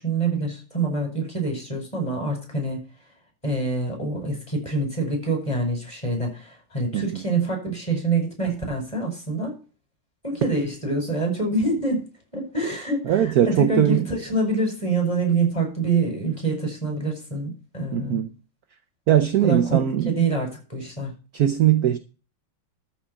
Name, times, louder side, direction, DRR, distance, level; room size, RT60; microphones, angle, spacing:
voice 1, 0.0-2.8 3.4-9.5 10.2-12.0 12.3-18.2 19.4-19.8 20.1-21.1, right 3 dB, 15° left, 5.8 m, -26 dB
voice 2, 6.9-7.3 13.0-14.0 17.9-18.3 19.1-20.3 21.3-22.0, right 11 dB, 60° right, 1.1 m, -20 dB
13.5 x 5.1 x 7.1 m
omnidirectional pair, 2.3 m